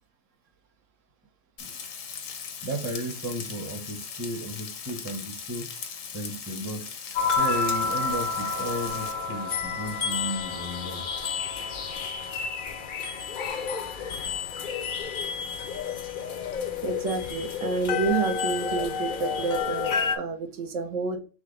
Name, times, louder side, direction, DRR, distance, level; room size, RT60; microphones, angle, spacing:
Frying (food), 1.6-9.1, left 6 dB, 80° left, 1.2 m, -39 dB
voice 1, 2.6-5.8 6.1-6.9 7.4-11.1, right 1 dB, 15° right, 0.7 m, -34 dB
sound 1, 7.1-20.2, left 5 dB, 55° left, 0.6 m, -30 dB
voice 2, 16.8-21.2, right 4 dB, 75° right, 1.1 m, -29 dB
3.7 x 3.2 x 3.8 m
omnidirectional pair, 1.3 m